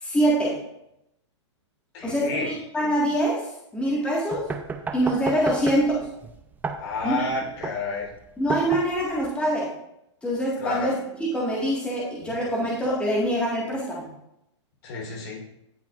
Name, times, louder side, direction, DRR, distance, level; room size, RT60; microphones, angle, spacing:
voice 1, 0.0-0.6 2.0-3.5 3.7-4.5 4.9-6.1 7.0-7.3 8.4-9.7 10.2-10.9 11.2-14.1, right 1 dB, 5° left, -6 dB, 1.8 m, -24 dB
voice 2, 1.9-2.5 6.8-8.1 10.6-10.9 14.8-15.4, left 3 dB, 50° left, -1 dB, 3.8 m, -30 dB
sound 1, 4.3-9.3, right 4 dB, 10° right, 0.6 m, -33 dB
17.0 x 5.9 x 2.5 m, 0.82 s
hypercardioid pair, 125°, 15 cm